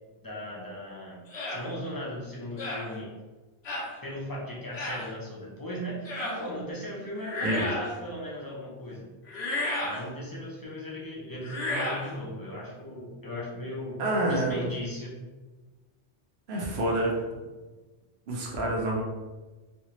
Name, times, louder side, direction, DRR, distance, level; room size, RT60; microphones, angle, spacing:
voice 1, 0.2-1.2 1.5-3.1 4.0-9.1 9.8-14.0 14.3-15.2, equal, 25° left, -5 dB, 0.6 m, -37 dB
sound 1, 1.3-1.6 2.6-2.9 3.7-3.9 4.7-5.0 6.1-6.4 7.2-7.9 9.3-10.0 11.4-12.1, left 1 dB, 70° left, 1.1 m, -32 dB
voice 2, 14.0-14.7 16.5-17.2 18.3-19.0, right 1 dB, 65° right, -1 dB, 1.0 m, -27 dB
3.3 x 2.9 x 2.9 m, 1.2 s
omnidirectional pair, 1.2 m